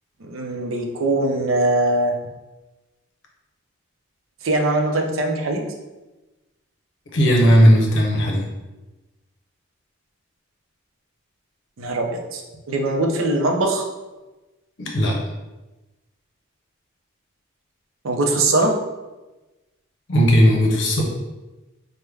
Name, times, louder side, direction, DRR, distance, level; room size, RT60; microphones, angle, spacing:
voice 1, 0.3-2.1 4.4-5.6 11.8-12.4 12.7-13.8 18.0-18.7, right 2 dB, 80° right, 2 dB, 0.5 m, -21 dB
voice 2, 7.1-8.4 14.8-15.2 20.1-21.0, equal, 65° left, 0 dB, 0.6 m, -16 dB
3.4 x 2.1 x 3.2 m, 1.1 s
head